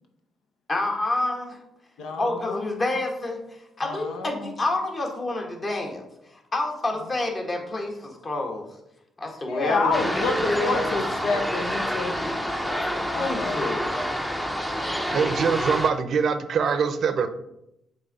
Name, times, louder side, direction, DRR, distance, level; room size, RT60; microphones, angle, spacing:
voice 1, 0.7-1.5 2.2-3.4 3.8-8.7 9.2-10.9 12.2-12.3 13.1-13.9, left 2 dB, 35° left, 1.5 m, -28 dB
voice 2, 2.0-2.6 3.8-4.5 9.5-12.2 13.1-13.8 15.2-15.4, left 4 dB, 80° left, 0.9 m, -28 dB
sound 1, 9.9-15.9, equal, 5° left, 0.7 m, -28 dB
voice 3, 15.1-17.3, right 6 dB, 60° right, 0.6 m, -23 dB
7.9 x 3.6 x 4.1 m
cardioid pair, 90°, 0 cm